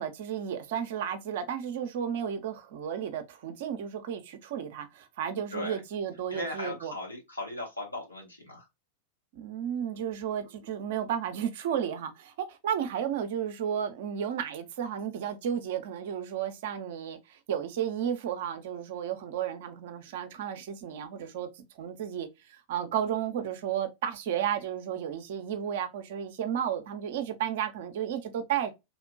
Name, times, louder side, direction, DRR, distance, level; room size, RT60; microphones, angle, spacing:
voice 1, 0.0-7.0 9.3-28.7, right 9 dB, 55° right, 0.5 m, -33 dB
voice 2, 5.5-5.8 6.3-8.7, left 1 dB, 85° left, 1.2 m, -37 dB
3.1 x 2.1 x 2.3 m
figure-of-eight pair, 90°, 0 cm